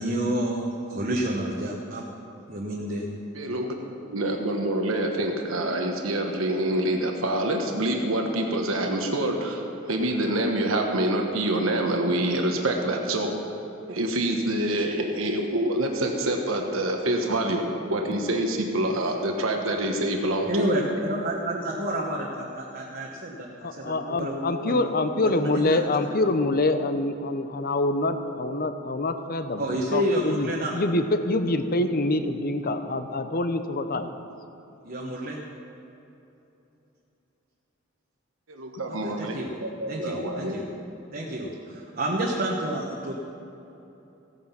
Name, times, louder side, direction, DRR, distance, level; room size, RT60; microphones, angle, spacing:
voice 1, 0.0-2.0 2.5-3.1 20.5-24.8 25.1-25.2 25.5-25.8 29.6-30.7 34.8-35.4 38.9-39.5 39.9-40.6 41.1-43.1, right 1 dB, 45° right, -2 dB, 1.3 m, -29 dB
voice 2, 3.3-3.7 4.1-13.3 13.9-17.6 17.9-20.5 38.5-40.6, right 1 dB, 80° right, 2 dB, 1.3 m, -26 dB
voice 3, 23.6-34.1, left 2 dB, 45° left, 9 dB, 0.8 m, -26 dB
15.5 x 9.3 x 5.8 m, 2.9 s
head